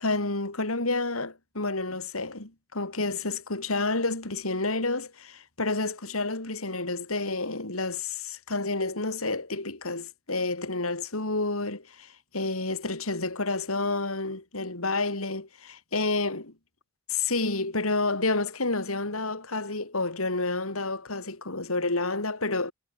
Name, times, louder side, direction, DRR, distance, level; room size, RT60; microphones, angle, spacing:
voice 1, 0.0-16.4 17.1-22.7, left 3 dB, 85° left, 4.7 m, -29 dB
head